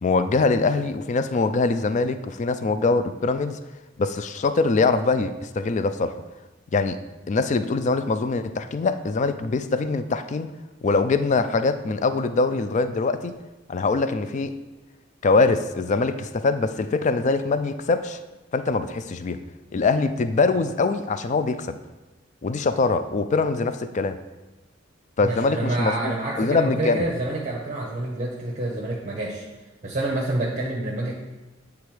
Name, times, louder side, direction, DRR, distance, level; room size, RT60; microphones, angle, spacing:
voice 1, 0.0-3.6 4.0-6.2 6.7-7.0 7.3-10.5 10.8-13.3 13.7-14.6 15.2-18.2 18.5-19.4 19.7-21.8 22.4-24.2 25.2-27.1, left 3 dB, 35° left, 11 dB, 0.3 m, -23 dB
voice 2, 25.2-29.4 29.8-31.1, right 2 dB, 35° right, -3 dB, 0.8 m, -27 dB
8.4 x 3.5 x 4.8 m, 1.1 s
head